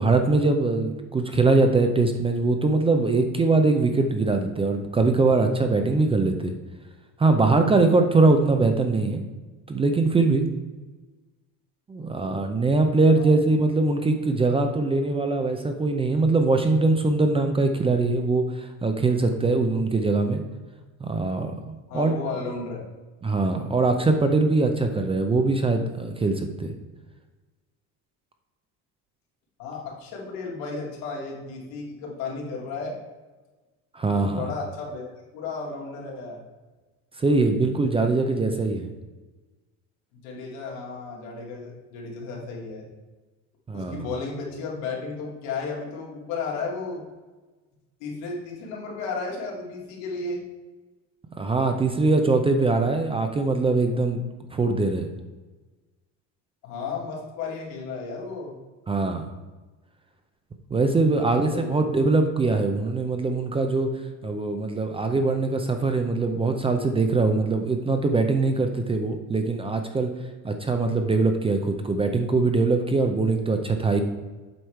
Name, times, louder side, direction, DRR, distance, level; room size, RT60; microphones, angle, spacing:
voice 1, 0.0-6.5 7.2-9.2 9.7-10.5 11.9-20.4 21.0-22.2 23.2-26.7 33.9-34.5 37.1-38.9 43.7-44.1 51.4-54.2 54.5-55.1 58.9-59.2 60.7-70.1 70.4-74.0, right 3 dB, 15° right, 6 dB, 0.5 m, -22 dB
voice 2, 21.9-22.9 29.6-32.9 34.1-36.4 40.2-42.9 43.7-47.0 48.0-50.4 56.6-58.5 61.2-61.8, left 4 dB, 85° left, -2 dB, 2.5 m, -34 dB
8.1 x 4.9 x 4.5 m, 1.2 s
cardioid pair, 130°, 39 cm